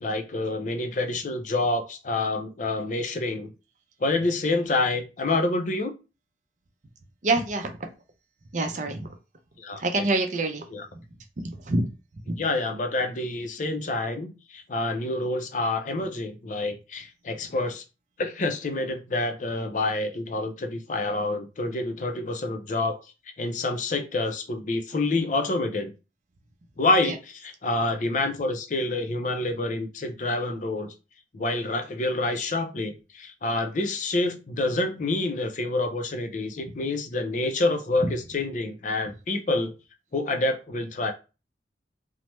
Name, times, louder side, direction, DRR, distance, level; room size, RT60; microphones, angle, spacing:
voice 1, 0.0-3.5 4.0-6.0 9.6-9.8 10.7-10.8 12.4-17.8 18.2-23.0 23.4-25.9 26.8-30.9 31.3-39.7 40.1-41.1, left 2 dB, 45° left, 6 dB, 0.5 m, -27 dB
voice 2, 7.2-7.9 8.5-9.2 9.8-10.7 10.9-11.0 11.4-11.9 12.3-12.4 27.0-27.1 38.0-38.1, right 2 dB, 45° right, 6 dB, 0.5 m, -26 dB
3.2 x 2.0 x 3.0 m, 0.30 s
head